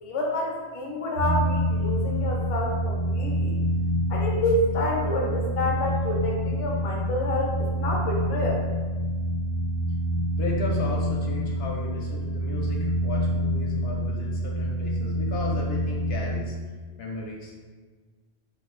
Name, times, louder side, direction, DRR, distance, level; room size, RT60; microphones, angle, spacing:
voice 1, 0.0-3.5 4.1-8.6, left 1 dB, 40° left, -1 dB, 0.6 m, -28 dB
sound 1, 1.2-16.4, equal, 90° right, 1.0 m, -27 dB
voice 2, 10.4-16.5 17.0-17.6, left 2 dB, 70° left, -2 dB, 0.8 m, -35 dB
2.6 x 2.4 x 4.1 m, 1.4 s
omnidirectional pair, 1.2 m